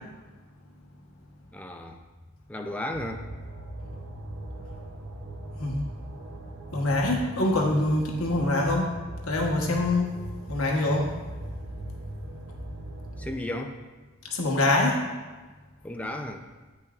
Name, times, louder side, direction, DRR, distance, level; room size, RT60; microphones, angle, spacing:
voice 1, 1.5-2.0 2.5-3.2 13.2-13.8 15.8-16.4, left 1 dB, 5° left, 3 dB, 0.4 m, -34 dB
sound 1, 2.9-13.4, right 1 dB, 65° right, 0.8 m, -39 dB
voice 2, 6.7-8.9 9.3-10.1 10.5-11.1 14.2-15.0, left 2 dB, 70° left, 0 dB, 1.1 m, -24 dB
8.9 x 5.5 x 2.4 m, 1.3 s
head